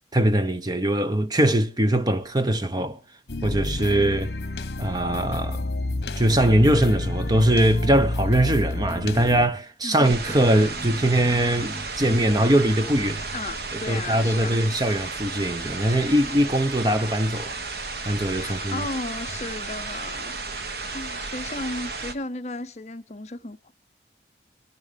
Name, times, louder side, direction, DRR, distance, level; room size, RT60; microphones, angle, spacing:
voice 1, 0.1-3.0 3.4-4.3 4.8-5.7 6.2-13.3 13.7-18.9, right 1 dB, 25° right, 0.8 m, -22 dB
sound 1, 3.3-9.5, left 2 dB, 65° left, 1.1 m, -29 dB
sound 2, 10.0-22.1, right 3 dB, 60° right, 1.4 m, -33 dB
voice 2, 13.3-14.6 18.4-20.3 20.9-23.7, left 2 dB, 40° left, 0.8 m, -34 dB
21.5 x 11.0 x 5.1 m
head